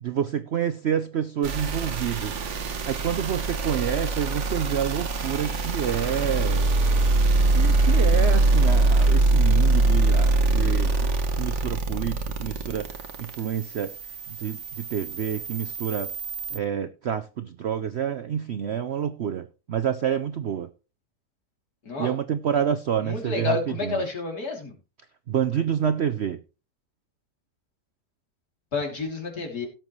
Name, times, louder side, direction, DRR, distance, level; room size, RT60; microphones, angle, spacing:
voice 1, 0.0-2.4 2.6-6.7 7.5-11.1 11.4-12.9 13.2-13.9 14.3-16.1 16.5-20.7 22.0-24.0 25.3-26.4, right 9 dB, 65° right, 0.6 m, -28 dB
sound 1, 1.4-16.6, right 2 dB, 50° right, 1.3 m, -23 dB
voice 2, 23.0-24.7 28.7-29.7, left 4 dB, 60° left, 3.6 m, -29 dB
17.5 x 7.5 x 3.1 m
omnidirectional pair, 1.8 m